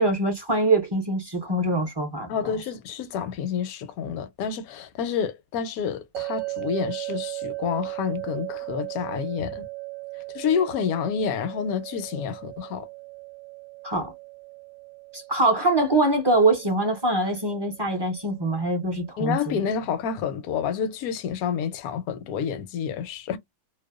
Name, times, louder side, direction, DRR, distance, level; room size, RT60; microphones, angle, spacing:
voice 1, 0.0-2.5 13.8-14.1 15.1-19.6, right 2 dB, 30° right, 0.4 m, -23 dB
voice 2, 2.3-9.7 10.3-12.9 19.2-23.4, left 7 dB, 80° left, 1.0 m, -29 dB
sound 1, 6.1-19.3, right 25 dB, 70° right, 0.9 m, -37 dB
2.6 x 2.1 x 2.2 m
omnidirectional pair, 1.5 m